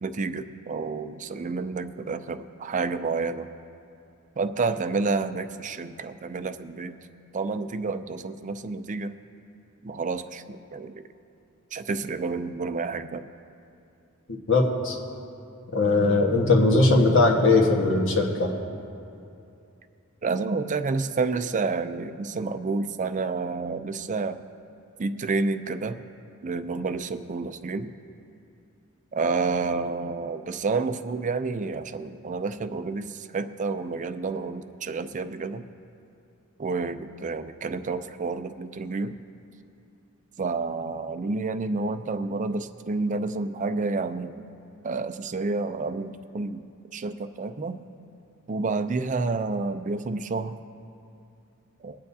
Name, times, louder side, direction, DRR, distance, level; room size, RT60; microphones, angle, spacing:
voice 1, 0.0-3.5 4.4-7.0 7.3-9.1 9.8-11.1 11.7-13.3 20.2-24.4 25.0-26.0 26.4-27.9 29.1-35.7 36.6-39.2 40.4-44.4 44.8-47.8 48.5-50.6 51.8-52.0, right 4 dB, 35° right, 10 dB, 0.4 m, -29 dB
voice 2, 14.5-15.0 15.7-18.5, left 2 dB, 65° left, 0 dB, 1.4 m, -20 dB
22.5 x 9.0 x 2.7 m, 2.7 s
head